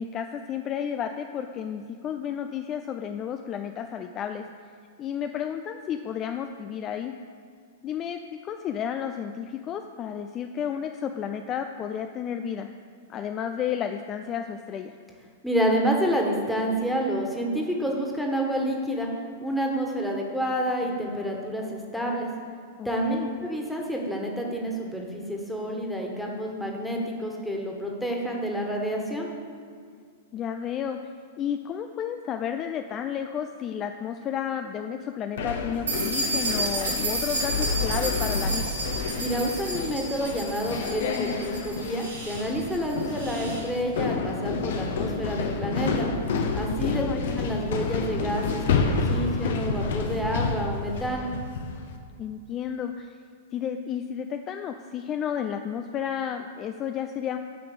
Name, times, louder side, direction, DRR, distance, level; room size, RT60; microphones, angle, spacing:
voice 1, 0.0-4.4 5.0-7.1 7.8-12.7 13.1-14.9 22.8-23.3 30.3-31.0 31.4-38.8 46.8-47.4 52.2-53.2 53.5-57.4, left 8 dB, 30° left, 6 dB, 0.4 m, -32 dB
voice 2, 15.4-19.1 19.4-22.3 22.8-29.3 39.2-46.1 46.5-47.0 47.4-51.3, equal, ahead, -1 dB, 1.7 m, -29 dB
sound 1, 35.4-51.8, left 4 dB, 60° left, 1.0 m, -29 dB
sound 2, 35.9-43.6, right 2 dB, 75° right, 2.5 m, -32 dB
10.0 x 5.9 x 6.9 m, 2.1 s
figure-of-eight pair, 100°, 0 cm